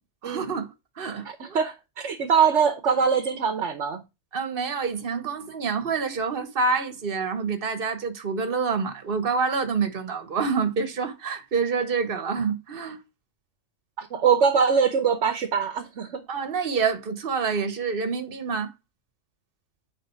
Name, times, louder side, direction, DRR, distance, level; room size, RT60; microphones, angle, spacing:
voice 1, 0.2-1.6 4.3-13.0 16.3-18.7, right 5 dB, 50° right, 1.3 m, -27 dB
voice 2, 1.4-4.0 14.0-16.2, right 6 dB, 65° right, 1.2 m, -23 dB
9.5 x 3.8 x 4.4 m
omnidirectional pair, 1.3 m